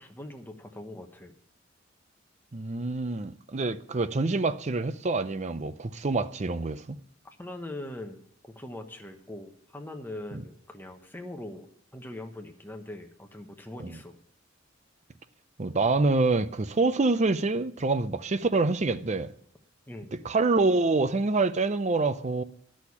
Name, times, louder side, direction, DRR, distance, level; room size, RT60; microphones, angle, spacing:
voice 1, 0.0-1.3 7.4-8.2 8.5-11.7 11.9-14.2 19.9-20.2, left 1 dB, 10° left, 1.1 m, -41 dB
voice 2, 2.5-7.0 10.3-10.4 13.8-14.0 15.6-19.3 20.2-22.4, right 3 dB, 35° right, 0.6 m, -26 dB
11.5 x 6.4 x 8.4 m
head